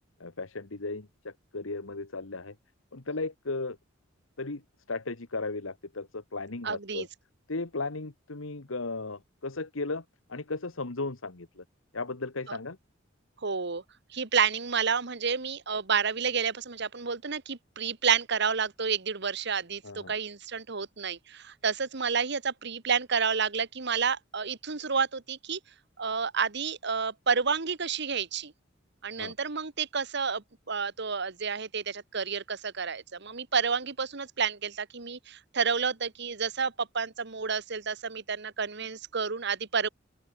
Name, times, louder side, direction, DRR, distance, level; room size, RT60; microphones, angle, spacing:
voice 1, 0.2-2.5 2.9-3.8 4.4-4.6 4.9-7.1 7.5-10.0 10.3-11.6 11.9-12.8 19.8-20.1 29.2-29.3, left 3 dB, 80° left, 1.6 m, -35 dB
voice 2, 6.6-7.1 12.5-12.6 13.4-13.8 14.1-25.6 26.0-28.5 29.0-39.9, right 6 dB, 60° right, 1.4 m, -30 dB
open air
head